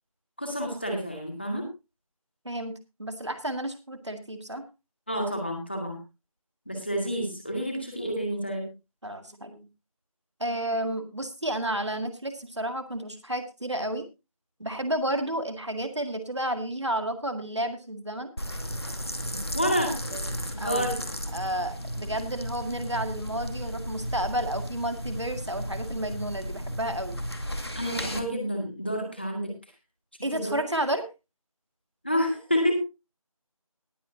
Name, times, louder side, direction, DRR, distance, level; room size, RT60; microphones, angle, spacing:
voice 1, 0.4-1.7 5.1-6.0 6.7-8.7 19.3-20.0 20.6-21.0 27.8-29.5 30.3-30.6 32.0-32.8, equal, 20° left, 1 dB, 2.2 m, -29 dB
voice 2, 3.0-4.6 9.0-9.7 10.4-14.1 14.6-18.3 20.1-20.3 20.6-20.9 21.3-27.2 30.2-31.0, right 1 dB, 50° right, 7 dB, 2.0 m, -31 dB
sound 1, 18.4-28.2, equal, 45° left, 2.1 m, -34 dB
19.5 x 9.0 x 2.8 m, 0.26 s
figure-of-eight pair, 180°, 19 cm